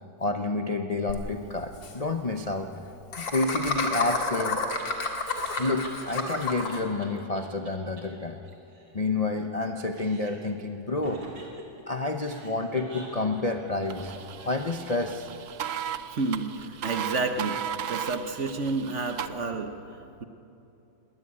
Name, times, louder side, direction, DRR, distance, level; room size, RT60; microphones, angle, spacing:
voice 1, 0.0-2.7 3.2-4.6 5.4-8.4 8.9-11.2 11.9-15.4, left 2 dB, 40° left, 4 dB, 0.5 m, -29 dB
Laughter, 1.1-1.2 1.4-1.5 1.7-1.9 3.1-6.8, left 3 dB, 75° left, 2.6 m, -30 dB
Laughter 2, 4.3-7.1 7.3-7.4 7.6-7.7 8.0-8.1 8.3-9.6 9.9-10.5 11.0-14.8, right 2 dB, 85° right, 3.7 m, -47 dB
sound 1, 13.9-19.3, right 9 dB, 60° right, 0.9 m, -36 dB
voice 2, 16.1-17.6 17.9-20.2, right 3 dB, 45° right, 6 dB, 1.2 m, -30 dB
20.5 x 18.0 x 8.8 m, 2.8 s
omnidirectional pair, 2.1 m